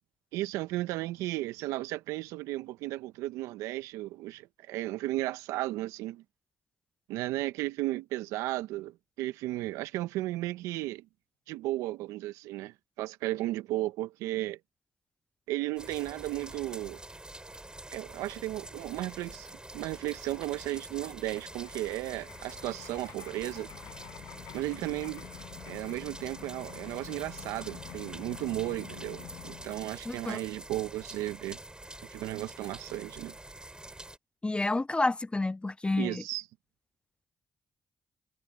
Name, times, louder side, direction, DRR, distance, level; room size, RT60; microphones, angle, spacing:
voice 1, 0.3-6.2 7.1-11.1 11.5-14.6 15.5-17.0 17.9-19.5 19.7-23.7 24.5-25.3 25.7-31.6 32.1-33.3 36.0-36.4, right 17 dB, 85° right, 1.5 m, -34 dB
sound 1, 15.8-34.2, right 1 dB, 15° right, 6.3 m, -46 dB
sound 2, 18.7-18.8 19.0-29.9, left 16 dB, 80° left, 7.0 m, -49 dB
voice 2, 30.1-30.4 34.4-36.2, left 2 dB, 20° left, 0.4 m, -29 dB
hypercardioid pair, 45°, 5 cm